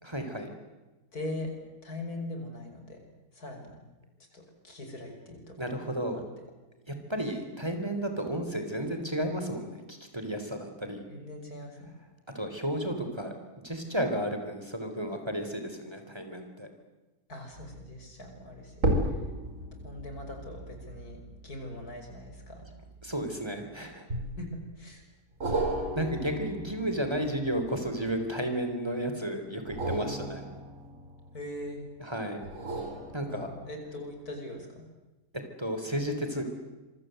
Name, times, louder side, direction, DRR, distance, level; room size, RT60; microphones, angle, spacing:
voice 1, 0.0-0.5 5.6-6.2 6.9-11.1 12.3-13.3 13.6-16.7 23.0-24.1 25.9-30.4 32.0-32.4 33.1-33.5 35.6-36.4, right 1 dB, 15° right, 6 dB, 3.9 m, -33 dB
voice 2, 1.1-1.5 1.8-3.0 3.3-3.8 4.3-6.2 11.1-11.9 17.3-19.2 19.8-22.7 24.4-25.0 31.3-31.8 33.3-34.9, left 1 dB, 90° left, 4 dB, 6.3 m, -41 dB
sound 1, 17.5-17.9 18.7-23.4 24.1-24.7 25.4-28.4 29.6-31.7 32.4-33.8 34.3-34.4, right 1 dB, 55° right, 5.0 m, -35 dB
27.0 x 24.0 x 7.9 m, 1.1 s
omnidirectional pair, 1.6 m